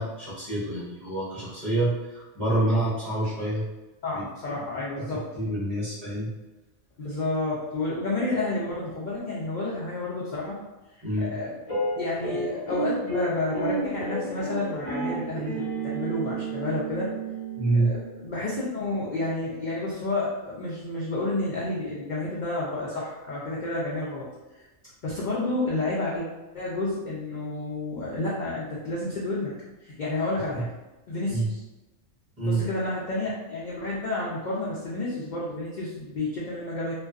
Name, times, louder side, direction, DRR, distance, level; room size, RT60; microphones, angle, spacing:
voice 1, 0.0-3.7 4.1-4.2 5.0-6.3 11.0-11.3 17.6-17.9 30.5-30.7 31.3-31.5 32.4-32.6, right 2 dB, 40° right, -8 dB, 0.6 m, -27 dB
voice 2, 4.0-5.2 7.0-10.6 10.9-11.5 11.9-17.1 17.8-24.3 25.0-26.3 26.5-29.5 29.8-30.7 31.1-31.6 32.4-36.9, left 2 dB, 75° left, -6 dB, 0.4 m, -30 dB
sound 1, 11.7-18.2, right 2 dB, 30° left, 0.9 m, -31 dB
2.4 x 2.2 x 2.3 m, 1.1 s
omnidirectional pair, 1.4 m